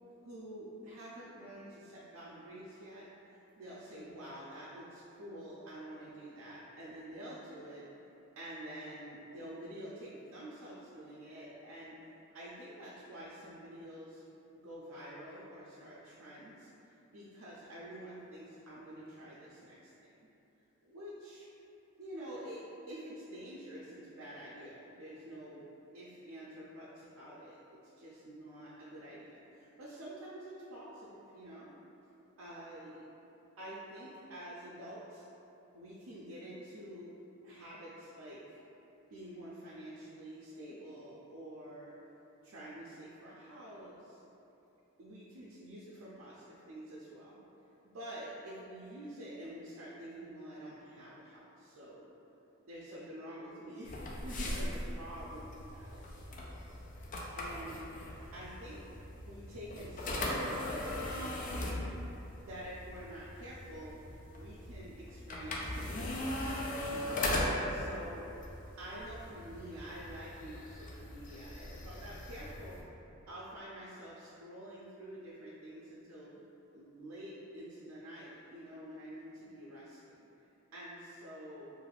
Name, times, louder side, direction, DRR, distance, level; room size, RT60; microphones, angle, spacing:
voice 1, 0.2-7.9 8.4-12.0 12.3-14.2 14.5-20.1 20.9-21.5 22.0-25.7 25.9-27.6 28.0-31.7 32.4-33.1 33.6-35.2 35.7-37.1 37.4-38.6 39.1-41.9 42.4-44.2 45.0-47.4 47.8-52.1 52.6-56.6 57.4-57.9 58.3-58.8 59.2-61.9 62.4-64.1 64.4-68.3 68.8-72.8 73.3-76.4 76.7-80.3 80.7-81.7, right 1 dB, 90° right, -7 dB, 0.4 m, -48 dB
sound 1, 53.8-72.8, left 1 dB, 40° left, 0.3 m, -39 dB
2.5 x 2.3 x 3.2 m, 2.9 s
head